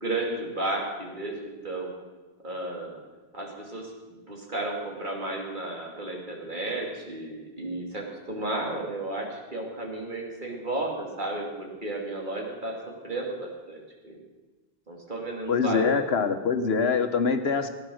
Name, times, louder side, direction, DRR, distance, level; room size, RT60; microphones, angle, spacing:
voice 1, 0.0-1.9 2.4-3.0 3.3-3.9 4.3-14.2 14.9-16.0, right 2 dB, 50° right, -1 dB, 2.8 m, -33 dB
voice 2, 15.5-17.7, left 5 dB, 80° left, 8 dB, 1.3 m, -24 dB
16.5 x 10.5 x 6.4 m, 1.2 s
omnidirectional pair, 1.1 m